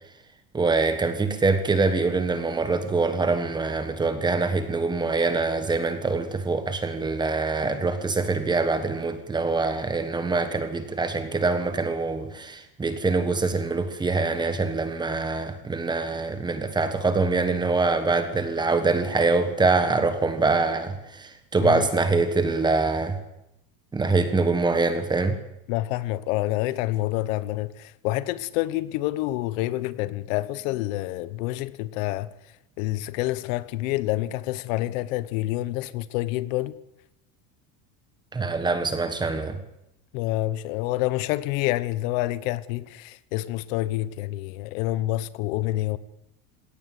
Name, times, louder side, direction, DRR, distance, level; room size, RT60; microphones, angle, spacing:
voice 1, 0.5-23.2 23.9-25.4 38.3-39.6, right 3 dB, 10° right, 1.4 m, -24 dB
voice 2, 25.7-32.3 32.8-36.8 40.1-46.0, left 16 dB, 70° left, 1.2 m, -28 dB
20.5 x 17.5 x 9.3 m
cardioid pair, 175°, 41 cm